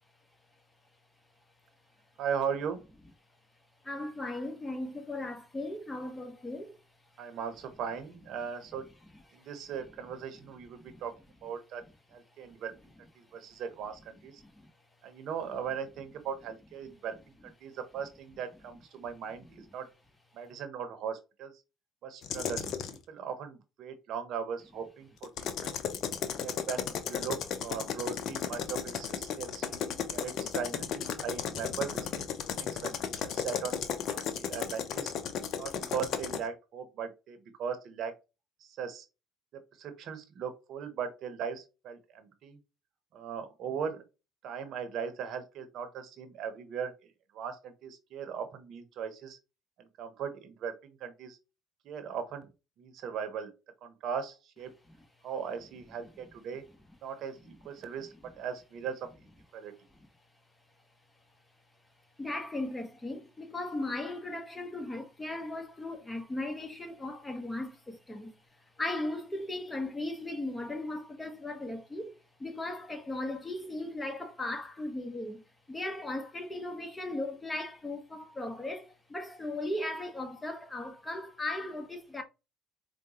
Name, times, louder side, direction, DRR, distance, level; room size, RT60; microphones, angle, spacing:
voice 1, 2.2-2.9 7.2-8.9 9.3-11.1 11.4-11.8 12.1-14.4 15.0-19.9 20.3-21.6 22.0-22.7 23.1-25.8 26.4-33.8 34.1-35.1 35.6-38.1 38.6-39.1 39.5-42.6 43.1-44.0 44.4-49.4 49.8-51.4 51.8-52.5 52.8-53.5 53.8-54.7 55.2-56.6 57.0-59.1 59.5-59.7, right 7 dB, 60° right, 0.8 m, -39 dB
voice 2, 3.8-6.8 9.3-9.5 10.8-11.0 14.4-14.7 62.2-68.3 68.8-72.1 72.4-75.4 75.7-82.2, left 2 dB, 15° left, 1.0 m, -37 dB
sound 1, 22.2-23.0 25.2-36.4, left 8 dB, 60° left, 0.6 m, -35 dB
4.6 x 2.2 x 2.8 m
hypercardioid pair, 70°, 0 cm